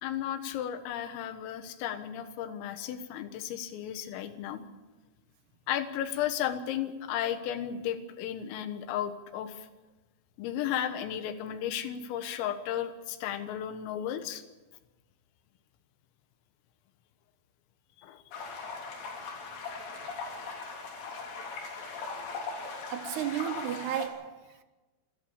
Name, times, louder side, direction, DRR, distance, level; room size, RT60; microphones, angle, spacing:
voice 1, 0.0-4.6 5.7-9.7 10.4-14.4 18.0-18.2, left 10 dB, 85° left, 4.0 m, -34 dB
sound 1, 18.3-24.1, left 4 dB, 70° left, 6.0 m, -39 dB
voice 2, 22.9-24.6, right 11 dB, 75° right, 2.5 m, -34 dB
27.0 x 14.5 x 7.2 m
omnidirectional pair, 5.8 m